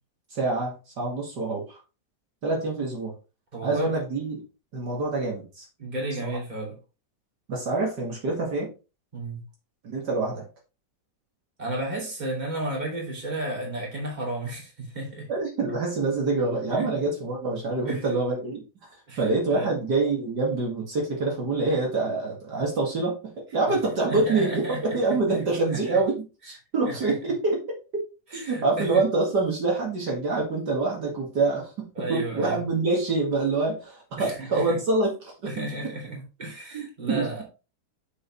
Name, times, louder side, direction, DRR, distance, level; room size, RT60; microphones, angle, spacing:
voice 1, 0.3-1.8 2.4-3.1 3.6-4.4 4.7-5.7 6.2-6.4 7.5-8.7 9.8-10.4 15.3-18.9 19.2-23.2 23.5-26.2 26.4-28.0 28.3-35.9 36.7-37.3, right 3 dB, 60° right, 2.5 m, -26 dB
voice 2, 3.5-3.9 5.8-6.8 9.1-9.4 11.6-15.3 16.8-16.9 17.9-18.0 19.1-19.2 19.5-19.7 24.0-24.8 25.7-26.0 26.8-27.1 28.3-29.0 32.0-32.6 34.2-34.8 35.4-37.4, right 1 dB, 20° right, 2.8 m, -33 dB
7.1 x 6.9 x 3.1 m
omnidirectional pair, 2.0 m